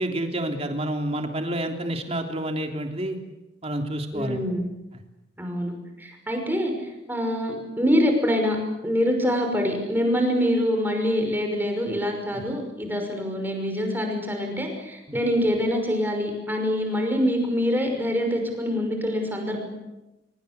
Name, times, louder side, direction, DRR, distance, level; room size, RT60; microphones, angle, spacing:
voice 1, 0.0-3.2 3.6-4.4 12.3-12.4 15.1-15.2, right 1 dB, 35° right, 4 dB, 3.3 m, -29 dB
voice 2, 4.1-4.7 5.4-5.7 6.0-8.6 8.8-19.6, equal, 10° right, 3 dB, 5.8 m, -25 dB
24.5 x 24.0 x 8.3 m, 1.0 s
head